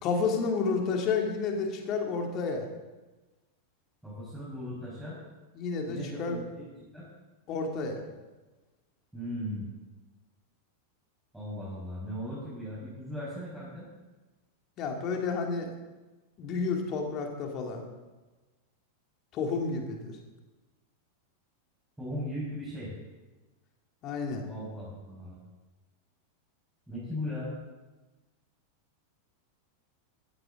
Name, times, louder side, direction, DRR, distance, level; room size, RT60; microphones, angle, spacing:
voice 1, 0.0-2.7 5.5-6.4 7.5-8.0 14.8-15.7 16.4-17.8 19.3-20.1 24.0-24.4, left 4 dB, 35° left, 2 dB, 2.7 m, -30 dB
voice 2, 4.0-5.2 5.9-6.7 6.9-7.1 9.1-9.7 11.3-13.9 22.0-22.9 24.4-25.4 26.9-27.5, left 1 dB, 5° right, -8 dB, 5.6 m, -38 dB
16.0 x 14.0 x 3.9 m, 1.2 s
figure-of-eight pair, 90°, 0 cm